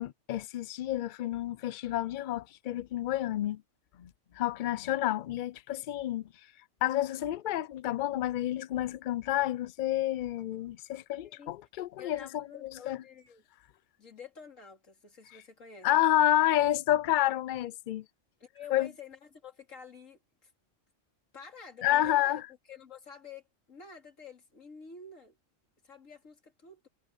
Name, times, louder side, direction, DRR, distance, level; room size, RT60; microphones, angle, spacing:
voice 1, 0.0-3.6 4.0-6.3 6.8-13.0 15.8-18.0 18.7-18.9 21.8-22.4, left 13 dB, 55° left, 0.5 m, -29 dB
voice 2, 11.2-11.5 12.0-13.4 14.0-16.2 18.4-20.5 21.3-22.4 22.7-23.4 23.7-25.4 25.8-26.9, left 6 dB, 80° left, 3.0 m, -49 dB
omnidirectional pair, 1.3 m